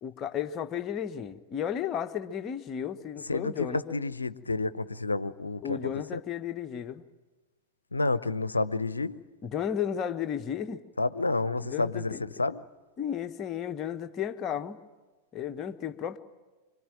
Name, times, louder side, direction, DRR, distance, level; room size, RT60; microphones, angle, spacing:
voice 1, 0.0-4.0 5.6-7.0 9.4-10.8 11.6-12.2 13.0-14.8 15.3-16.2, left 9 dB, 30° left, 8 dB, 1.3 m, -33 dB
voice 2, 3.3-6.2 7.9-9.2 11.0-12.6, left 3 dB, 80° left, 16 dB, 0.8 m, -30 dB
25.5 x 24.5 x 9.1 m, 1.2 s
figure-of-eight pair, 90°, 0 cm